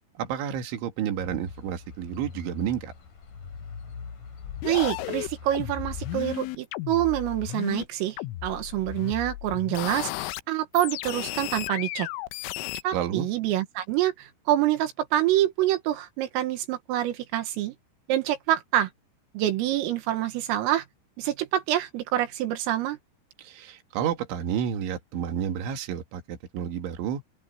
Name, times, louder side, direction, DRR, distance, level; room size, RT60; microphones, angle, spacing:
voice 1, 0.2-2.9 12.9-13.3 23.4-27.2, right 9 dB, 70° right, 4.5 m, -30 dB
sound 1, 1.2-6.4, left 5 dB, 45° left, 5.0 m, -42 dB
sound 2, 4.4-7.8 8.2-10.4 10.7-12.8, left 17 dB, 85° left, 3.1 m, -34 dB
voice 2, 4.6-8.2 8.4-12.1 12.8-17.7 18.1-18.9 19.4-20.8 21.2-23.0, right 13 dB, 85° right, 4.4 m, -26 dB
open air
omnidirectional pair, 5.8 m